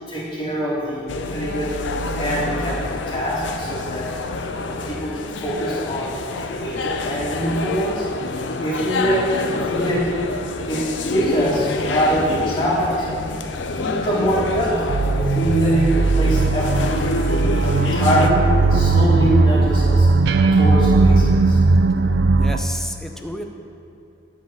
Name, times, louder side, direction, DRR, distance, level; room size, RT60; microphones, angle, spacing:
voice 1, 0.1-1.7 2.2-4.0 4.6-8.1 8.6-9.2 9.5-10.0 10.7-13.0 13.8-16.9 17.5-20.1 20.5-21.6, right 1 dB, 30° left, -13 dB, 2.1 m, -23 dB
sound 1, 1.1-18.3, left 3 dB, 80° left, 0.6 m, -27 dB
sound 2, 14.9-22.6, right 3 dB, 65° right, 0.4 m, -17 dB
voice 2, 22.4-23.4, equal, 5° left, 3 dB, 0.5 m, -31 dB
9.9 x 4.0 x 7.4 m, 2.8 s
head